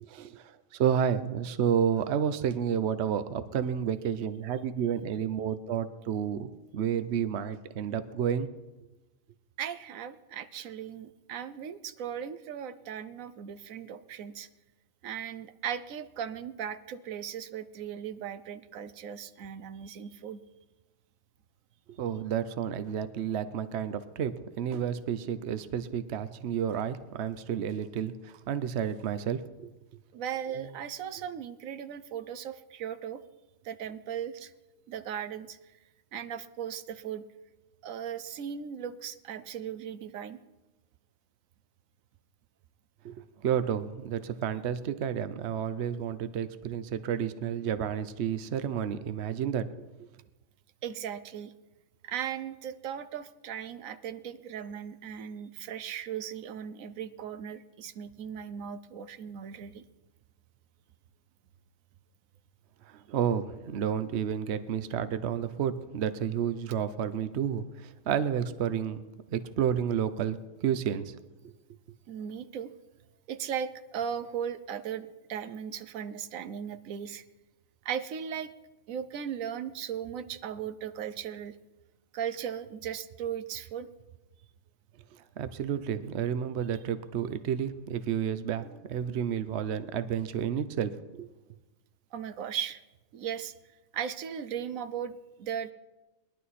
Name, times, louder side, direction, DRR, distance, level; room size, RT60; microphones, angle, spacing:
voice 1, 0.0-8.5 22.0-29.7 30.5-30.7 43.0-43.1 43.4-49.8 62.9-69.0 69.3-71.1 85.4-91.3, right 8 dB, 60° right, 12 dB, 1.0 m, -31 dB
voice 2, 9.6-14.5 15.0-20.4 30.1-33.2 33.6-34.5 34.9-35.6 36.1-37.2 37.8-40.4 50.8-51.5 52.0-59.8 72.1-72.7 73.3-77.2 77.8-78.5 78.9-81.6 82.1-83.9 92.1-92.8 93.1-93.5 93.9-95.7, right 8 dB, 90° right, 12 dB, 1.1 m, -37 dB
21.0 x 11.5 x 4.2 m, 1.1 s
omnidirectional pair, 1.4 m